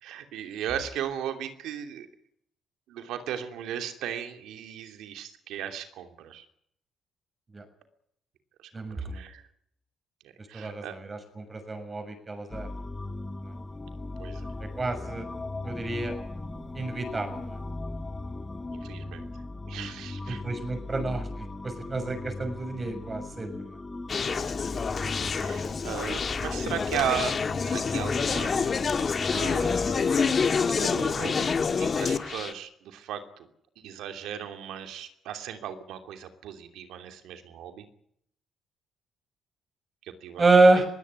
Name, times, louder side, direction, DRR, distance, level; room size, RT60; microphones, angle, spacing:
voice 1, 0.0-2.1 2.9-6.5 8.6-9.4 10.5-11.0 14.2-14.5 14.8-15.1 18.7-19.3 19.7-20.4 24.3-24.5 25.0-28.6 29.3-30.1 30.8-33.5 33.8-37.8 40.0-40.4 40.7-40.8, right 9 dB, 90° right, 7 dB, 2.9 m, -36 dB
voice 2, 8.7-9.2 10.5-12.8 13.4-13.5 14.8-15.3 15.6-16.1 16.7-17.6 20.3-23.8 28.6-28.7 40.4-40.9, right 2 dB, 30° right, 9 dB, 6.7 m, -27 dB
sound 1, 12.5-30.0, left 2 dB, 20° left, 1.9 m, -38 dB
Conversation, 24.1-32.5, left 5 dB, 40° left, 1.6 m, -27 dB
21.0 x 17.5 x 9.5 m, 0.71 s
cardioid pair, 90°, 0 cm